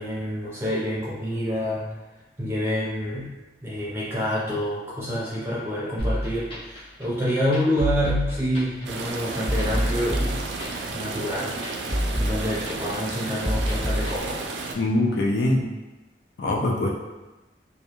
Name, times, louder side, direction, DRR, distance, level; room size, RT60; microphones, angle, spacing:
voice 1, 0.0-1.9 2.4-3.3 3.6-10.4 10.9-11.6 12.2-14.4, equal, 15° right, -7 dB, 0.6 m, -27 dB
sound 1, 6.0-14.2, equal, 30° left, 0.6 m, -28 dB
sound 2, 8.9-14.7, right 3 dB, 85° right, 0.3 m, -33 dB
voice 2, 14.7-15.6 16.4-16.9, left 1 dB, 75° left, -1 dB, 0.4 m, -22 dB
2.3 x 2.2 x 2.9 m, 1.1 s
head